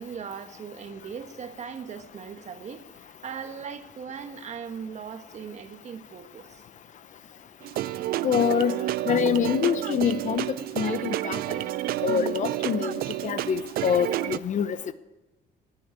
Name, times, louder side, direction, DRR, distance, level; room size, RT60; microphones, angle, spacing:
voice 1, 0.0-6.6 8.0-8.1 9.5-9.6, right 6 dB, 45° right, 7 dB, 1.4 m, -39 dB
sound 1, 7.6-14.4, right 15 dB, 65° right, 0.4 m, -30 dB
voice 2, 8.2-8.7 9.1-10.4 10.8-11.4 12.0-12.9 13.2-14.9, left 8 dB, 45° left, 13 dB, 0.8 m, -25 dB
14.5 x 8.4 x 9.0 m, 1.1 s
cardioid pair, 110°, 17 cm